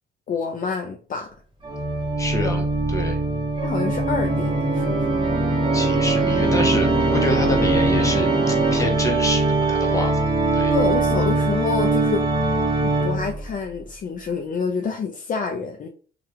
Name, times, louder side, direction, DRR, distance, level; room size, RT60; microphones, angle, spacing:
voice 1, 0.3-1.3 3.6-5.0 10.7-12.2 12.8-15.9, left 5 dB, 45° left, 0.4 m, -27 dB
Organ, 1.6-13.5, right 2 dB, 25° right, 1.2 m, -21 dB
voice 2, 2.2-3.2 5.7-10.7, left 1 dB, 15° left, 0.9 m, -27 dB
2.8 x 2.3 x 3.4 m
cardioid pair, 90°, 20 cm